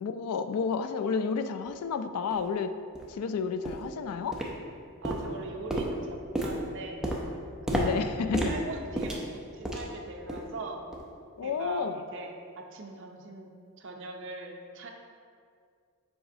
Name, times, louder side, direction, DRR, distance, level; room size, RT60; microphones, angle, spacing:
voice 1, 0.0-2.7 3.1-4.4 7.7-8.5 11.4-12.0, left 5 dB, 85° left, 9 dB, 0.4 m, -31 dB
sound 1, 1.7-1.8 2.3-2.4 2.9-3.1 3.6-3.9 4.3-4.8 5.0-10.0 10.3-10.6 10.9-11.1 11.6-11.7, right 1 dB, 5° right, 0.5 m, -32 dB
voice 2, 5.0-7.1 7.7-8.1 8.5-10.8 11.4-13.5 13.8-14.9, right 3 dB, 55° right, 2 dB, 0.6 m, -41 dB
7.8 x 5.0 x 2.7 m, 2.2 s
head